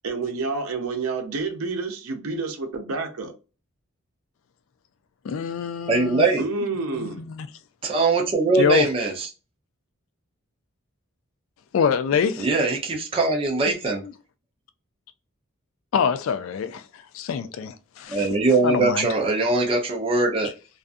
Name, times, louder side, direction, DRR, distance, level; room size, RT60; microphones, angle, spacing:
voice 1, 0.0-3.3 6.4-7.2, right 3 dB, 85° right, 0.6 m, -29 dB
voice 2, 5.2-6.3 7.0-7.5 8.5-8.9 11.7-12.5 14.0-14.1 15.9-18.3 18.6-19.1, left 6 dB, 65° left, 0.3 m, -25 dB
voice 3, 5.9-6.4 7.8-9.3 12.4-14.0 18.1-20.5, right 3 dB, 25° right, 0.4 m, -21 dB
2.4 x 2.3 x 2.5 m
head